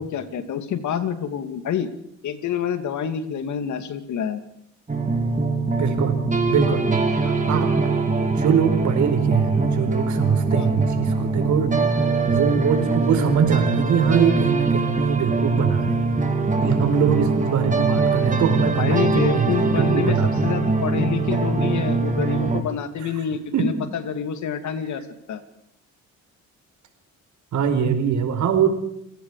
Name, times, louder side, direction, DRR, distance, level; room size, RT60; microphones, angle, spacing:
voice 1, 0.0-1.9 2.2-4.4 10.6-10.7 18.8-20.2 20.4-25.0 25.3-25.4, left 8 dB, 70° left, 9 dB, 2.6 m, -27 dB
sound 1, 4.9-22.6, right 3 dB, 25° right, 3.6 m, -22 dB
voice 2, 5.8-6.2 6.5-7.7 8.3-11.7 12.3-16.0 16.6-20.3 23.5-23.7 27.5-28.8, right 7 dB, 70° right, 7 dB, 4.7 m, -22 dB
30.0 x 18.0 x 5.0 m, 0.75 s
cardioid pair, 90°, 30 cm